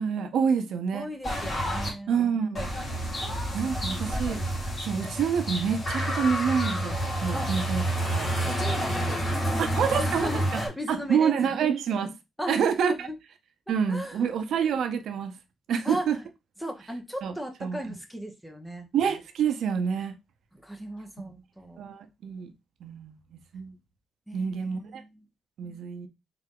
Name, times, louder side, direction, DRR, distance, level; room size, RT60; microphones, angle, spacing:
voice 1, 0.0-1.1 2.1-2.7 3.5-4.5 4.8-7.8 8.1-8.3 9.6-10.6 10.9-12.1 12.5-13.1 13.7-15.4 15.7-16.2 17.2-17.3 17.6-18.0 18.9-20.2 21.8-22.5 22.8-23.2 23.5-23.7 24.3-25.0 25.6-26.1, right 7 dB, 80° right, 0.6 m, -27 dB
voice 2, 0.9-2.1 7.3-7.5 8.5-11.6 12.4-12.5 12.8-13.1 13.7-14.3 15.8-16.2 16.6-18.9 20.6-21.8 24.3-25.3, equal, ahead, 0.8 m, -37 dB
sound 1, 1.2-1.9 2.5-10.7, equal, 35° left, 1.8 m, -29 dB
3.9 x 3.3 x 3.7 m
wide cardioid pair, 165°, 0 cm